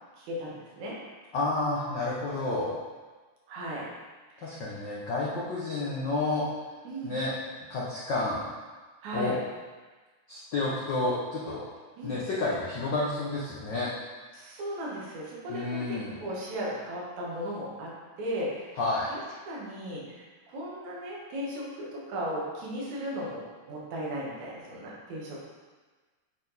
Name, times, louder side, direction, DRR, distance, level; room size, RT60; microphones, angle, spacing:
voice 1, 0.2-1.0 3.5-3.9 4.3-4.6 6.8-7.2 9.0-9.4 12.0-12.2 14.3-17.9 18.2-18.8 19.1-19.2 19.5-23.4 23.7-25.4, equal, 75° right, -5 dB, 2.8 m, -36 dB
voice 2, 1.3-2.7 4.4-6.5 7.0-7.3 7.7-8.4 9.1-9.4 10.3-11.7 12.0-13.9 15.5-16.2 18.8-19.1, left 2 dB, 70° left, -6 dB, 1.0 m, -30 dB
8.4 x 4.4 x 4.1 m, 1.3 s
omnidirectional pair, 3.4 m